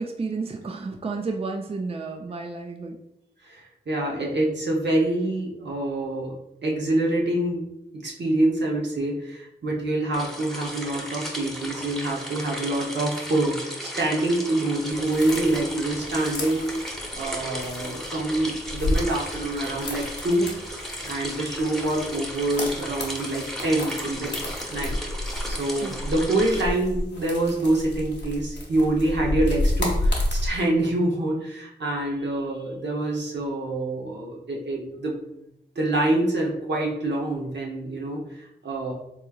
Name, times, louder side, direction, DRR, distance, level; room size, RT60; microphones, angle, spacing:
voice 1, 0.0-3.0 25.8-26.0, right 3 dB, 35° right, 3 dB, 0.4 m, -31 dB
voice 2, 3.4-6.3 6.6-20.5 21.0-24.4 24.7-25.0 25.5-35.2 35.8-38.9, right 1 dB, 80° right, -2 dB, 0.8 m, -26 dB
sound 1, 10.1-26.6, equal, ahead, 0.8 m, -35 dB
sound 2, 14.9-30.5, left 1 dB, 85° left, 0.8 m, -31 dB
3.6 x 3.0 x 2.3 m, 0.82 s
cardioid pair, 45°, 18 cm